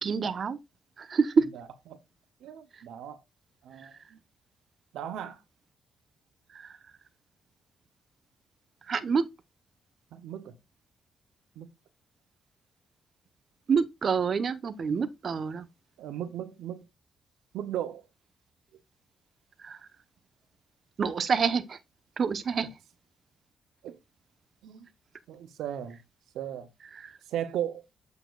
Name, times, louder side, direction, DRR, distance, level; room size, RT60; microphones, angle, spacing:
voice 1, 0.0-0.6 1.0-1.5 6.5-6.7 8.9-9.2 13.7-15.7 19.6-19.8 21.0-21.8 22.2-22.7 27.0-27.1, right 5 dB, 55° right, 0.9 m, -27 dB
voice 2, 1.5-2.0 2.4-3.2 3.6-4.2 4.9-5.4 10.1-10.6 11.6-11.7 16.0-16.8 17.5-18.0 23.8-24.0 24.6-24.9 25.3-26.0 26.3-26.7 27.3-27.8, right 10 dB, 85° right, 0.7 m, -36 dB
8.3 x 6.5 x 2.4 m
cardioid pair, 70°, 0 cm